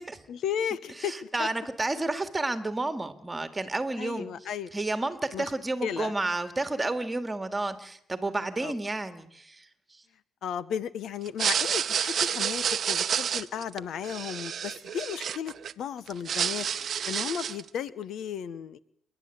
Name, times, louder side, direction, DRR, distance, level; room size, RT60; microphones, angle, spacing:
voice 1, 0.3-1.5 4.0-4.7 5.3-5.4 5.8-6.1 8.6-8.7 10.4-16.7 17.1-18.8, left 8 dB, 65° left, 16 dB, 0.9 m, -34 dB
voice 2, 1.0-4.3 4.7-10.0, right 2 dB, 15° right, 9 dB, 2.1 m, -31 dB
sound 1, 11.3-15.7 16.1-17.7, right 8 dB, 50° right, 0.8 m, -29 dB
28.5 x 11.5 x 9.4 m, 0.73 s
cardioid pair, 105°, 0 cm